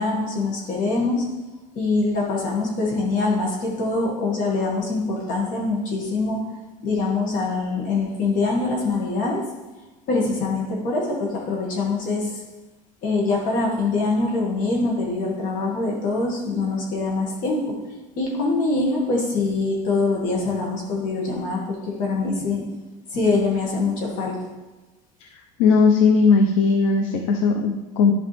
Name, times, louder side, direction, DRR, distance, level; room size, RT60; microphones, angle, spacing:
voice 1, 0.0-1.3 1.8-6.5 6.8-9.5 10.1-12.4 13.0-17.8 18.2-22.7 23.1-24.4, left 3 dB, 55° left, -1 dB, 2.2 m, -24 dB
voice 2, 25.6-28.1, left 4 dB, 85° left, 4 dB, 0.7 m, -18 dB
11.5 x 5.1 x 3.5 m, 1.1 s
supercardioid pair, 125°, 17 cm